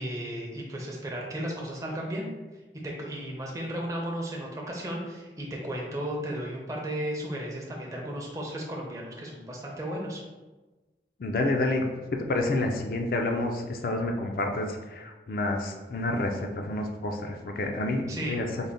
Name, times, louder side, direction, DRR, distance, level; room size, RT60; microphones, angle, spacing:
voice 1, 0.0-2.3 2.8-10.2 18.1-18.4, right 1 dB, 20° right, -2 dB, 0.5 m, -34 dB
voice 2, 11.2-11.9 12.1-18.4, left 2 dB, 55° left, 3 dB, 0.4 m, -29 dB
3.9 x 2.1 x 3.4 m, 1.2 s
head